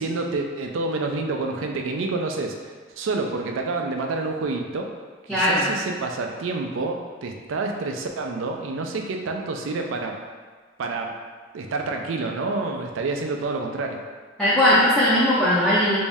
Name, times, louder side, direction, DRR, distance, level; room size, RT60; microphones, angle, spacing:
voice 1, 0.0-2.5 3.0-4.9 5.3-10.1 10.8-11.1 11.5-14.0, right 3 dB, 70° right, 3 dB, 0.4 m, -28 dB
voice 2, 5.3-5.6 14.4-16.0, left 1 dB, 5° left, -12 dB, 0.5 m, -18 dB
3.1 x 2.6 x 3.4 m, 1.5 s
head